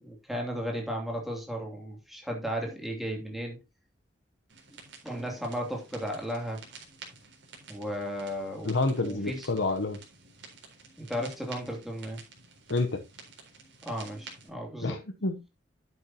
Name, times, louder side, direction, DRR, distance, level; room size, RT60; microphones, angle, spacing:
voice 1, 0.0-3.6 5.0-6.6 7.7-8.7 9.0-9.5 11.0-12.2 13.8-15.0, equal, ahead, 2.8 m, -35 dB
sound 1, 4.5-14.5, right 5 dB, 80° right, 4.1 m, -51 dB
voice 2, 8.6-10.0 12.7-13.0 14.8-15.4, left 2 dB, 80° left, 0.9 m, -28 dB
11.0 x 8.2 x 2.9 m
head